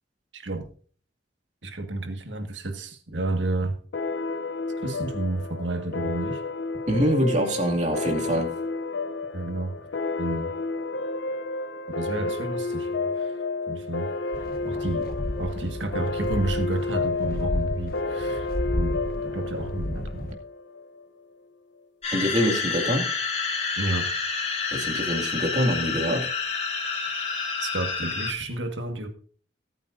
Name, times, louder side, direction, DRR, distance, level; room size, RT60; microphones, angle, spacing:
voice 1, 0.3-0.7 1.6-3.8 4.8-6.4 9.3-9.8 10.2-10.5 12.0-13.3 13.7-14.1 14.6-20.3 23.8-24.1 27.6-29.1, right 2 dB, 90° right, 1.8 m, -31 dB
sound 1, 3.9-21.0, left 3 dB, 80° left, 0.7 m, -31 dB
voice 2, 6.9-8.5 22.1-23.1 24.7-26.3, equal, 40° right, 2.4 m, -24 dB
sound 2, 14.3-20.3, left 1 dB, 50° left, 1.1 m, -33 dB
sound 3, 22.0-28.3, left 5 dB, 35° left, 2.3 m, -29 dB
19.0 x 8.9 x 2.7 m
head